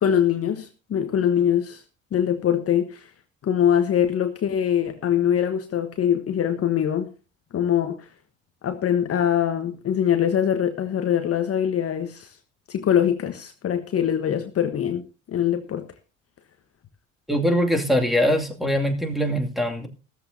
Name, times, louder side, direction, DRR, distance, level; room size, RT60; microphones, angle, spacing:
voice 1, 0.0-1.8 2.1-3.1 3.4-7.1 7.5-8.1 8.6-12.4 12.7-15.0 15.3-15.8, left 9 dB, 35° left, 7 dB, 1.3 m, -23 dB
voice 2, 17.3-19.9, equal, ahead, 1 dB, 2.5 m, -22 dB
15.5 x 14.0 x 2.8 m, 0.33 s
figure-of-eight pair, 60°, 39 cm